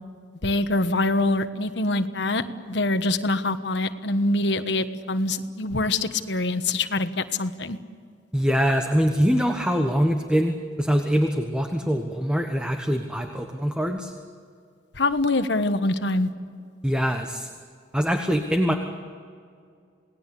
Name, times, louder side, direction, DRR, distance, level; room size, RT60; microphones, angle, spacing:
voice 1, 0.4-7.8 14.9-16.3, left 2 dB, 70° left, 9 dB, 1.3 m, -24 dB
voice 2, 8.3-14.1 16.8-17.5 17.9-18.7, equal, 5° right, 4 dB, 1.3 m, -23 dB
28.5 x 19.0 x 8.4 m, 2.2 s
head